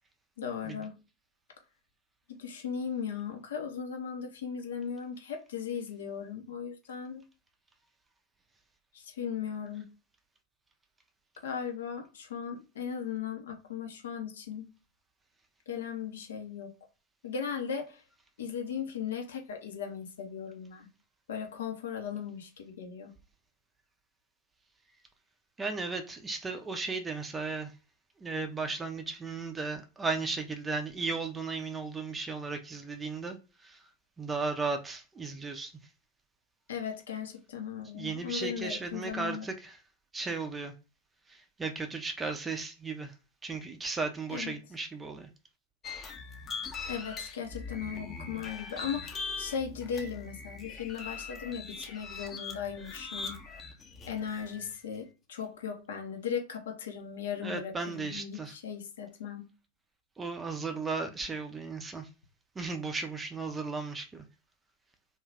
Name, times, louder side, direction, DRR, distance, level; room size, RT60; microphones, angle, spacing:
voice 1, 0.4-0.9 2.4-7.2 8.9-9.9 11.4-14.7 15.7-16.7 17.2-18.0 18.4-20.9 21.3-23.1 36.7-39.5 44.3-44.5 46.9-53.4 54.1-59.5, left 7 dB, 60° left, 0.7 m, -37 dB
voice 2, 25.6-27.7 28.2-33.8 34.2-35.7 37.9-39.8 40.1-40.7 41.3-43.1 43.4-45.3 57.4-58.5 60.2-62.1 62.6-64.3, right 4 dB, 15° right, 0.5 m, -35 dB
sound 1, 45.8-54.8, left 4 dB, 20° left, 0.7 m, -41 dB
2.6 x 2.3 x 3.3 m
figure-of-eight pair, 90°, 0 cm